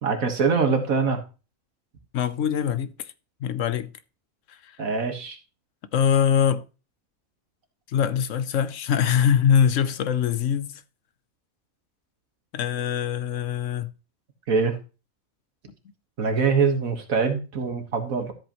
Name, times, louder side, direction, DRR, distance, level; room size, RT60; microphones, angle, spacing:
voice 1, 0.0-1.2 4.8-5.4 14.5-14.8 16.2-18.3, right 5 dB, 80° right, 2.0 m, -23 dB
voice 2, 2.1-3.1 3.4-3.9 4.5-4.7 5.9-6.6 7.9-10.8 12.5-13.9, left 8 dB, 70° left, 1.0 m, -23 dB
13.0 x 7.9 x 3.0 m
omnidirectional pair, 1.4 m